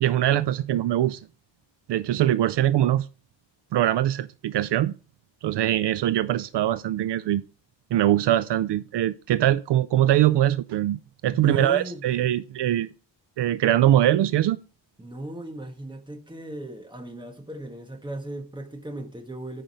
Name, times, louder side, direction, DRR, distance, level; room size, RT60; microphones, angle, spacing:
voice 1, 0.0-1.2 1.9-3.1 3.7-4.9 5.4-7.4 7.9-12.9 13.4-14.6, right 12 dB, 70° right, 0.5 m, -22 dB
voice 2, 11.3-12.0 15.0-19.6, right 1 dB, 10° right, 1.3 m, -36 dB
9.3 x 5.2 x 4.3 m
wide cardioid pair, 175°, 44 cm